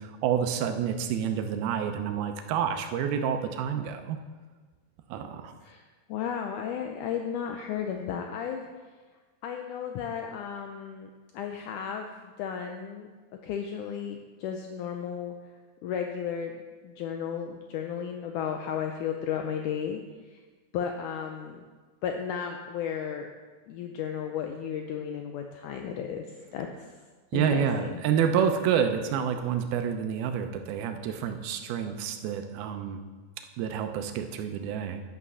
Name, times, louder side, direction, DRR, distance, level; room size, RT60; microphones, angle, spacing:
voice 1, 0.0-4.2 5.1-5.5 27.3-33.0 33.6-35.0, right 8 dB, 80° right, 6 dB, 2.6 m, -28 dB
voice 2, 5.6-8.6 9.4-13.1 13.4-15.4 15.8-16.5 16.8-20.4 20.7-21.6 22.0-23.3 23.7-26.7 27.3-28.0, left 8 dB, 85° left, 4 dB, 1.8 m, -34 dB
10.5 x 8.5 x 5.5 m, 1.4 s
omnidirectional pair, 4.4 m